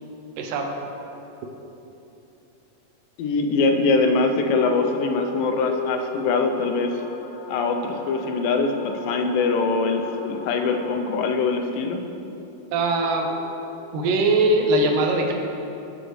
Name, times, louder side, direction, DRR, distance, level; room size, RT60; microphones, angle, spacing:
voice 1, 0.4-0.7 12.7-13.2 13.9-15.3, right 2 dB, 75° right, 2 dB, 2.5 m, -21 dB
voice 2, 3.2-7.0 7.5-12.0, left 4 dB, 90° left, 4 dB, 2.4 m, -23 dB
sound 1, 4.3-11.3 13.0-14.1, left 4 dB, 75° left, 1.4 m, -35 dB
17.5 x 6.3 x 3.2 m, 2.9 s
omnidirectional pair, 3.9 m